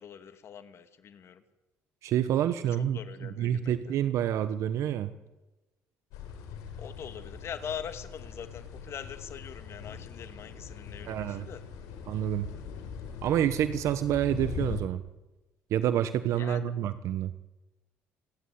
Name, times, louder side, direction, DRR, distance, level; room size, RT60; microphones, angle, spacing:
voice 1, 0.0-1.4 2.6-4.0 6.8-11.6 16.4-16.9, left 8 dB, 55° left, 9 dB, 2.3 m, -43 dB
voice 2, 2.0-5.1 11.0-11.5 12.1-12.5 13.2-15.0 15.7-17.3, right 10 dB, 70° right, 11 dB, 1.2 m, -28 dB
sound 1, 6.1-14.8, left 6 dB, 85° left, 4.6 m, -41 dB
28.0 x 11.5 x 9.6 m, 1.1 s
supercardioid pair, 80°, 5 cm